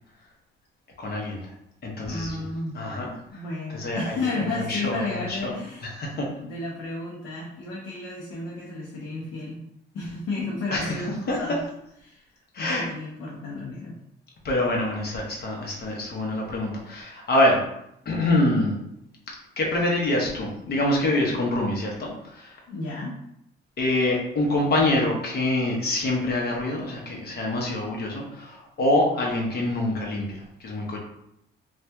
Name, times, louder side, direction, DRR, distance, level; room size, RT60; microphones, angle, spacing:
voice 1, 1.0-1.5 1.8-2.4 2.7-3.4 3.7-5.5 5.8-6.3 10.7-11.4 12.5-12.9 14.4-17.7 18.0-18.7 19.6-22.6 23.8-31.0, left 1 dB, 50° left, -1 dB, 1.0 m, -26 dB
voice 2, 2.0-2.8 3.3-5.9 6.4-9.6 9.9-11.6 12.0-12.3 12.6-14.0 22.7-23.2, left 3 dB, 80° left, -3 dB, 0.7 m, -32 dB
2.7 x 2.4 x 3.4 m, 0.79 s
cardioid pair, 90°, 20 cm